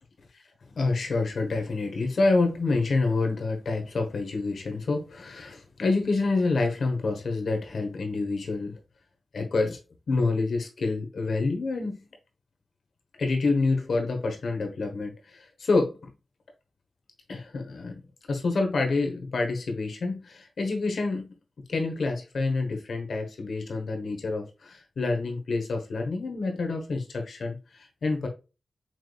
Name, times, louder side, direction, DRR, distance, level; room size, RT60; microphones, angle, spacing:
voice 1, 0.7-8.7 9.3-9.8 10.1-12.0 13.2-16.0 17.3-18.0 18.3-21.3 21.7-28.3, left 3 dB, 80° left, 1.2 m, -27 dB
5.9 x 3.2 x 2.3 m
cardioid pair, 55°, 0 cm